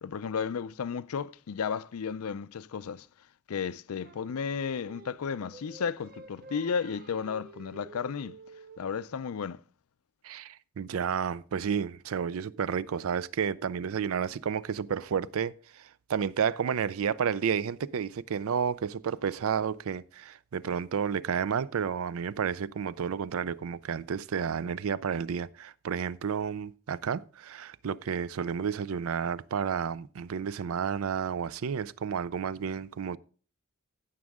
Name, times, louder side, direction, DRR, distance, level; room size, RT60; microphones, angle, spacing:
voice 1, 0.0-3.1 3.5-8.4 8.8-9.6, left 6 dB, 80° left, 0.4 m, -33 dB
Singing, 4.0-9.2, right 3 dB, 40° right, 0.8 m, -51 dB
voice 2, 10.2-33.2, right 7 dB, 70° right, 0.4 m, -31 dB
15.5 x 6.2 x 3.5 m
head